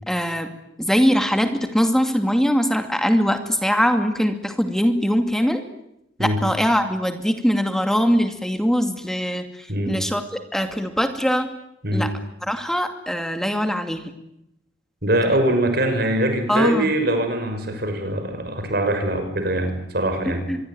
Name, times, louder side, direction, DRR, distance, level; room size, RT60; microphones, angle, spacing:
voice 1, 0.1-0.5 0.8-5.6 6.2-10.2 10.5-11.5 11.9-12.1 12.5-14.1 16.5-16.9 17.7-17.8 20.5-20.6, equal, ahead, 6 dB, 2.5 m, -21 dB
voice 2, 15.0-20.5, right 1 dB, 55° right, 7 dB, 6.1 m, -22 dB
25.5 x 22.5 x 9.6 m, 0.83 s
head